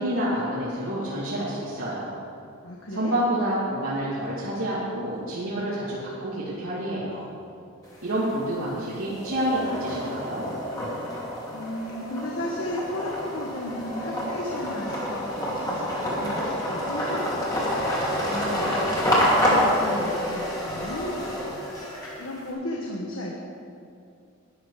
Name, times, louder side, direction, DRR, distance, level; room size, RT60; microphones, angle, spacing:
voice 1, 0.0-2.2 2.9-7.3 8.0-10.4, right 1 dB, 75° right, -9 dB, 2.4 m, -28 dB
voice 2, 2.6-3.1 11.5-17.6 18.2-23.4, left 1 dB, 75° left, -2 dB, 1.4 m, -35 dB
sound 1, 7.9-8.5 8.9-22.4, equal, 20° left, 2.7 m, -28 dB
12.5 x 11.0 x 4.9 m, 2.4 s
head